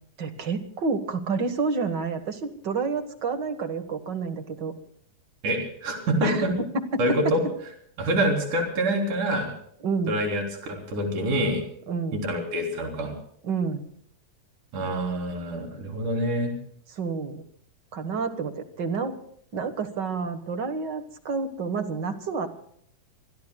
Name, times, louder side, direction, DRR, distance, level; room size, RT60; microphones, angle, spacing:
voice 1, 0.2-4.7 6.2-6.5 6.7-7.2 9.8-10.2 11.9-12.2 13.4-13.9 16.9-17.4 17.9-19.1 19.5-22.5, right 4 dB, 50° right, 8 dB, 1.4 m, -29 dB
voice 2, 5.4-6.5 7.0-7.4 8.0-9.5 10.1-11.6 12.1-13.1 14.7-16.5, right 1 dB, 65° right, 1 dB, 5.0 m, -26 dB
27.0 x 22.0 x 2.3 m, 0.65 s
omnidirectional pair, 3.9 m